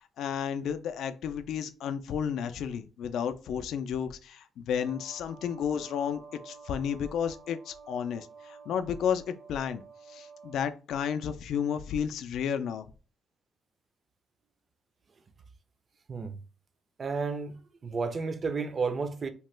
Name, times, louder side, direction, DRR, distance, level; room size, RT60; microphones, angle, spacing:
voice 1, 0.0-9.8 10.1-12.9, left 8 dB, 75° left, 0.3 m, -32 dB
sound 1, 4.8-10.7, right 5 dB, 65° right, 0.9 m, -51 dB
voice 2, 17.0-17.6 17.8-19.3, right 4 dB, 35° right, 0.4 m, -31 dB
2.8 x 2.2 x 3.2 m
cardioid pair, 120°, 0 cm